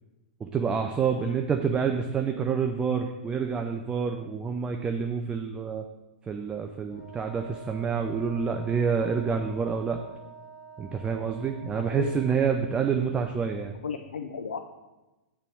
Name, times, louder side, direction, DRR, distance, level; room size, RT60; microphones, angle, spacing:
voice 1, 0.4-5.8 6.3-10.0 10.8-13.7, right 6 dB, 20° right, 4 dB, 0.4 m, -28 dB
voice 2, 1.1-1.4 11.7-12.1 13.8-14.6, left 6 dB, 85° left, 6 dB, 0.4 m, -35 dB
Wind instrument woodwind instrument, 6.9-12.6, right 6 dB, 5° left, 2.0 m, -47 dB
6.6 x 3.5 x 6.0 m, 1.1 s
hypercardioid pair, 110°, 5 cm